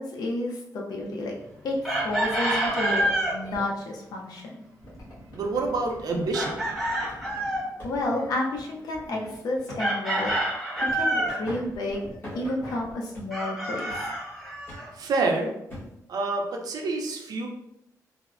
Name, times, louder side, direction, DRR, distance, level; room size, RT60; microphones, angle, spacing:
voice 1, 0.0-1.3 1.6-4.6 7.4-7.5 7.8-10.3 10.9-12.0 12.3-14.1, left 1 dB, 75° left, -1 dB, 0.5 m, -31 dB
Chicken rooster, 1.8-3.4 6.3-7.7 9.8-11.4 13.3-14.9, right 1 dB, ahead, 0.9 m, -27 dB
sound 1, 2.0-3.6 4.8-9.9 10.2-10.5 10.7-12.9, left 1 dB, 60° left, 1.4 m, -44 dB
voice 2, 5.3-6.7 14.9-15.5 16.1-17.5, right 3 dB, 75° right, 2 dB, 0.5 m, -27 dB
sound 2, 7.8-8.0 8.5-8.6 9.7-10.0 10.3-10.5 11.5-11.7 12.2-12.5 13.1-13.4 13.9-14.1 14.7-14.9 15.7-16.0 16.7-16.8, left 1 dB, 30° left, 1.1 m, -41 dB
3.3 x 2.0 x 2.4 m, 0.83 s
wide cardioid pair, 120°, 7 cm